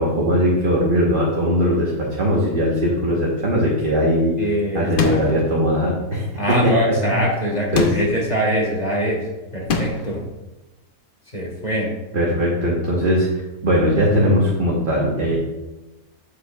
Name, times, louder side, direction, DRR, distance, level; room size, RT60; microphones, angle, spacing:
voice 1, 0.0-6.2 6.6-6.7 7.1-7.2 7.7-7.9 12.1-13.3 13.6-15.4, equal, 35° right, -4 dB, 1.2 m, -19 dB
voice 2, 4.4-5.2 6.4-10.2 11.3-12.0, equal, 25° left, -2 dB, 1.8 m, -23 dB
sound 1, 5.0-5.5 7.7-8.3 9.7-10.2, left 4 dB, 55° left, 0.6 m, -24 dB
8.3 x 7.6 x 2.4 m, 1.1 s
omnidirectional pair, 1.6 m